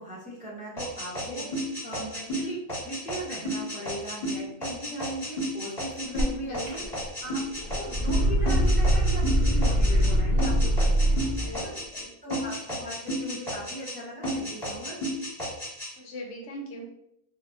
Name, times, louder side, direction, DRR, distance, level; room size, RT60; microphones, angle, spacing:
voice 1, 0.0-1.5 1.8-2.6 2.8-7.4 7.8-11.7 12.2-15.0, right 1 dB, 10° right, -6 dB, 0.4 m, -38 dB
sound 1, 0.8-10.1 10.4-12.0 12.3-14.0 14.2-15.9, equal, 20° left, 0.8 m, -33 dB
sound 2, 6.2-6.3 6.7-7.2 7.5-11.5, equal, 45° right, 0.7 m, -23 dB
voice 2, 6.5-6.9 11.4-12.1 16.0-16.9, equal, 65° left, 1 dB, 0.8 m, -40 dB
2.2 x 2.1 x 3.5 m, 0.78 s
omnidirectional pair, 1.4 m